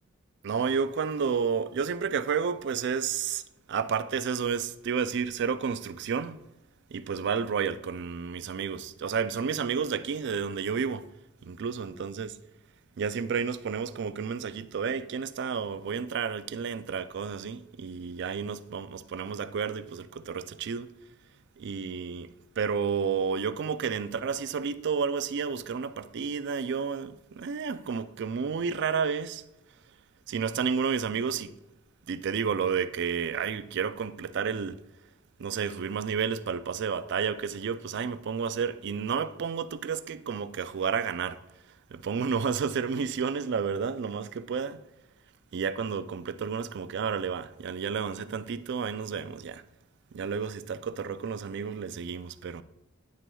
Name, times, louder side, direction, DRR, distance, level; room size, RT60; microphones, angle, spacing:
voice 1, 0.4-3.4 3.7-6.4 6.9-11.1 11.4-12.3 13.0-20.9 21.6-22.3 22.6-29.4 30.3-31.5 32.1-34.8 35.4-41.4 41.9-44.8 45.5-49.6 50.1-52.6, right 6 dB, 55° right, 0.4 m, -31 dB
9.5 x 6.0 x 2.3 m
head